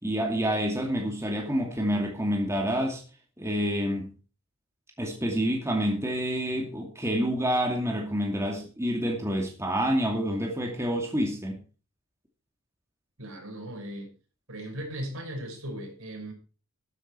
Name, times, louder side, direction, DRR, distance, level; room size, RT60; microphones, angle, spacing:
voice 1, 0.0-3.0 3.4-4.1 5.0-11.6, equal, 15° right, 2.5 m, -28 dB
voice 2, 13.2-14.1 14.5-16.3, right 1 dB, 65° right, 5.6 m, -37 dB
13.0 x 10.0 x 4.6 m
head